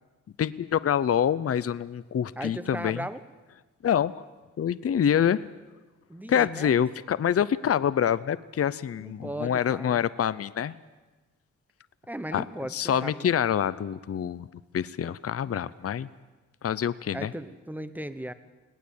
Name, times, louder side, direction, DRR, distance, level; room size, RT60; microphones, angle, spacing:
voice 1, 0.4-3.1 3.8-4.2 4.6-5.4 6.3-10.7 12.3-12.4 12.7-14.5 14.7-16.1 16.6-17.3, left 9 dB, 50° left, 16 dB, 0.6 m, -26 dB
voice 2, 2.4-3.2 6.1-6.7 9.0-10.0 12.1-13.3 17.1-18.3, right 1 dB, 5° right, 13 dB, 0.8 m, -37 dB
20.0 x 18.5 x 8.5 m, 1.2 s
wide cardioid pair, 145°, 30 cm